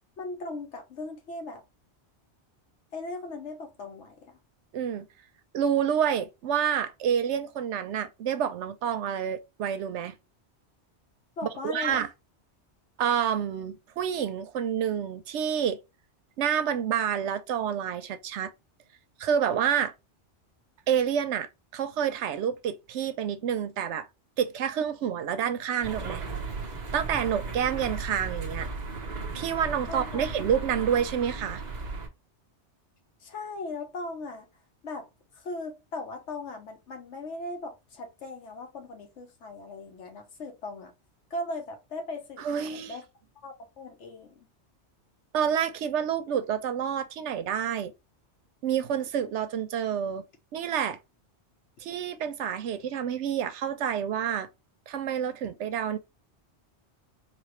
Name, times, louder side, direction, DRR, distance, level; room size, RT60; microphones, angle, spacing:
voice 1, 0.2-1.6 2.9-4.4 11.4-12.0 29.9-30.5 33.2-34.5 34.8-35.1 35.3-40.9 41.3-43.0 43.4-44.5, left 2 dB, 80° left, 1.3 m, -38 dB
voice 2, 4.7-5.1 5.5-10.1 11.6-12.1 13.0-15.8 16.4-18.5 19.2-19.9 20.9-24.1 24.4-26.2 26.9-28.7 29.3-31.6 42.4-43.0 45.3-47.9 48.6-50.2 50.5-51.0 51.8-54.5 54.9-56.0, right 8 dB, 85° right, 0.9 m, -28 dB
sound 1, 25.8-32.1, right 3 dB, 40° right, 0.9 m, -36 dB
4.2 x 2.6 x 3.1 m
omnidirectional pair, 1.2 m